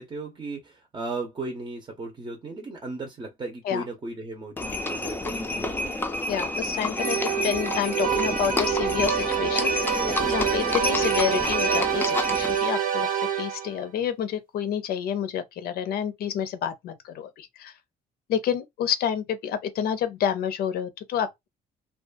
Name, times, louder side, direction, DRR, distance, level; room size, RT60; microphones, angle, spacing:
voice 1, 0.0-6.0, right 3 dB, 30° right, 0.7 m, -36 dB
Livestock farm animals working animals, 4.6-12.7, left 2 dB, 10° left, 0.4 m, -29 dB
voice 2, 6.3-17.7 18.3-21.3, left 8 dB, 65° left, 0.5 m, -29 dB
sound 1, 6.9-13.8, right 9 dB, 55° right, 0.8 m, -27 dB
2.4 x 2.3 x 2.4 m
cardioid pair, 110°, 17 cm